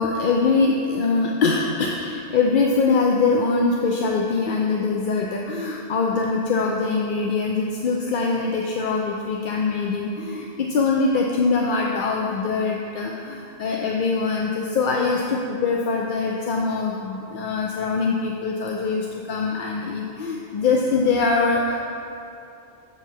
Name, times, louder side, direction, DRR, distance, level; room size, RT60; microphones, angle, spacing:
voice 1, 0.0-21.8, left 4 dB, 60° left, 0 dB, 0.6 m, -23 dB
6.9 x 6.7 x 4.5 m, 2.7 s
omnidirectional pair, 1.1 m